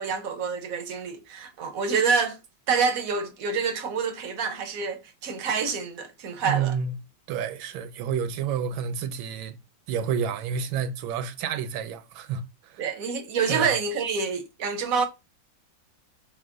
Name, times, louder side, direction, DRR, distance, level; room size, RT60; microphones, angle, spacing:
voice 1, 0.0-2.4 2.7-6.8 12.8-15.0, right 5 dB, 65° right, 0.8 m, -27 dB
voice 2, 6.5-6.9 7.3-9.6 9.9-12.8 13.5-13.7, right 7 dB, 90° right, 1.4 m, -29 dB
5.7 x 2.1 x 3.7 m
omnidirectional pair, 2.1 m